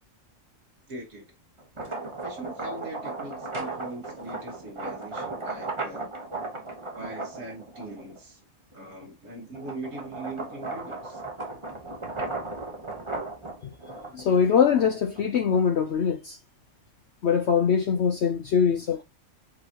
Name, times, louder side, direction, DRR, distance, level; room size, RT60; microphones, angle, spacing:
voice 1, 0.9-1.3 2.2-6.1 6.9-8.4 8.7-11.2, right 2 dB, 70° right, 1.7 m, -41 dB
sound 1, 1.6-8.2 8.7-15.9, right 3 dB, 25° right, 1.0 m, -36 dB
voice 2, 14.1-16.4 17.2-19.0, left 7 dB, 60° left, 0.8 m, -22 dB
4.8 x 3.9 x 2.8 m
omnidirectional pair, 1.4 m